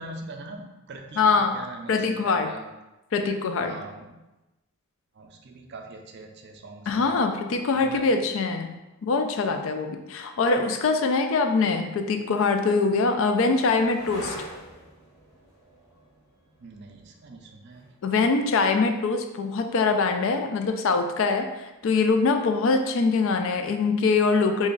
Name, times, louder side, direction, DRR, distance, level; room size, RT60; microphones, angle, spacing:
voice 1, 0.0-2.7 3.6-4.2 5.1-7.4 7.7-8.1 16.6-17.9, right 2 dB, 50° right, 4 dB, 0.4 m, -42 dB
voice 2, 1.2-1.6 1.9-2.5 3.1-3.8 6.9-8.7 9.0-14.4 18.0-24.7, left 4 dB, 60° left, 6 dB, 0.3 m, -23 dB
sound 1, 12.2-19.5 21.8-22.3, equal, 40° left, 1.2 m, -46 dB
3.0 x 2.5 x 3.7 m, 1.0 s
head